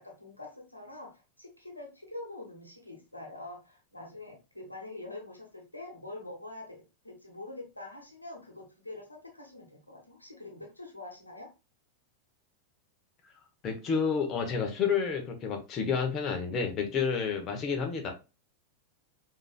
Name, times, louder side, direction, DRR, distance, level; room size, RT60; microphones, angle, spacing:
voice 1, 0.0-11.5, left 2 dB, 85° left, 0 dB, 1.1 m, -45 dB
voice 2, 13.6-18.1, left 6 dB, 30° left, 3 dB, 0.9 m, -30 dB
5.1 x 2.8 x 2.3 m, 0.28 s
figure-of-eight pair, 90°, 0 cm